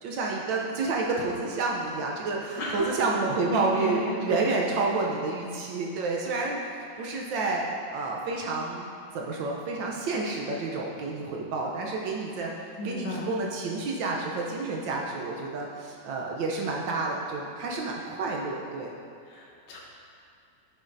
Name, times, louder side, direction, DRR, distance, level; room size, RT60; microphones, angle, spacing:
voice 1, 0.0-8.9 9.1-12.5 12.8-18.9, right 3 dB, 70° right, -1 dB, 1.4 m, -29 dB
voice 2, 2.6-3.1 3.5-4.4 7.0-7.1 12.8-13.3 19.2-19.8, left 2 dB, 70° left, -3 dB, 1.7 m, -35 dB
11.0 x 7.3 x 2.6 m, 2.4 s
omnidirectional pair, 2.2 m